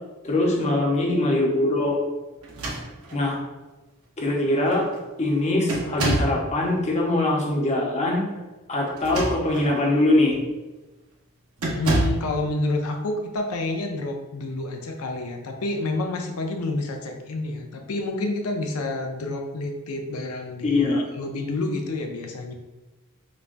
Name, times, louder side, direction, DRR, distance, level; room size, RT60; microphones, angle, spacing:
voice 1, 0.2-2.0 3.1-3.4 4.2-4.9 5.2-8.2 8.7-10.4 20.6-21.0, left 2 dB, 30° left, -2 dB, 0.7 m, -22 dB
sound 1, 2.4-3.3 4.2-4.3 4.7-5.0 5.7-6.4 8.9-9.7 10.3-10.5 11.6-12.3, right 1 dB, 80° right, 0.7 m, -27 dB
voice 2, 11.7-22.5, left 2 dB, 85° left, 3 dB, 0.5 m, -29 dB
5.0 x 2.2 x 2.5 m, 1.1 s
head